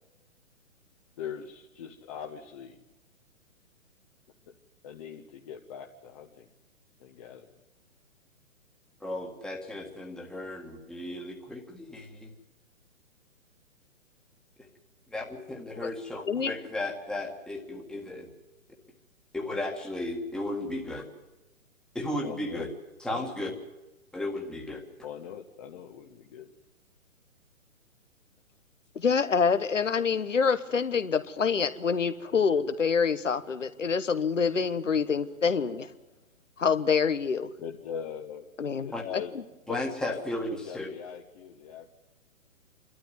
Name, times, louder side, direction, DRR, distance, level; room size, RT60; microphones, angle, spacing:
voice 1, 1.2-2.8 4.8-6.5 7.0-7.5 22.2-22.7 23.1-23.5 25.0-26.5 37.6-38.4 38.8-39.3 39.7-41.9, left 8 dB, 25° left, 2 dB, 1.2 m, -41 dB
voice 2, 9.0-12.3 15.1-18.3 19.3-21.0 22.0-22.7 23.0-23.5 24.1-24.8 38.9-39.0 39.7-40.9, left 1 dB, ahead, 1 dB, 1.8 m, -35 dB
voice 3, 28.9-35.9 36.6-37.5 38.6-39.2, left 6 dB, 65° left, 11 dB, 1.4 m, -26 dB
28.0 x 12.5 x 9.4 m, 1.1 s
figure-of-eight pair, 130°, 40 cm